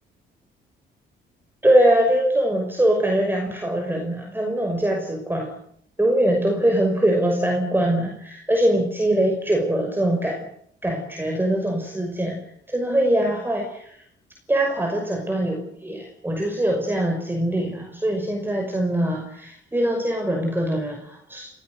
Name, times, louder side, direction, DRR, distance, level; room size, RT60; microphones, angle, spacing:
voice 1, 1.6-5.5 6.0-10.5 10.8-12.4 12.7-14.0 14.5-21.5, right 1 dB, 10° right, 1 dB, 5.7 m, -22 dB
28.0 x 16.5 x 8.0 m, 0.67 s
cardioid pair, 90°, 20 cm